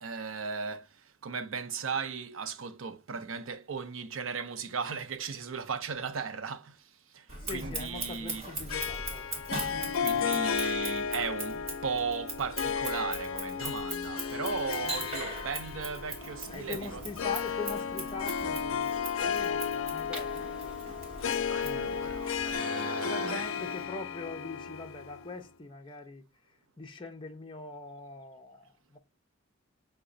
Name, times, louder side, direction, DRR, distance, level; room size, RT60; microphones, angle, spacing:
voice 1, 0.0-8.4 9.9-17.0 21.4-23.5, right 5 dB, 70° right, 0.5 m, -37 dB
Scissors, 7.3-22.6, right 2 dB, 35° right, 1.7 m, -41 dB
voice 2, 7.4-9.3 16.5-20.8 23.0-26.3 26.8-29.0, left 4 dB, 25° left, 0.5 m, -42 dB
Harp, 8.7-25.4, left 7 dB, 80° left, 0.5 m, -34 dB
Printer, 14.7-23.9, right 1 dB, 5° right, 1.1 m, -52 dB
5.8 x 2.1 x 3.7 m
head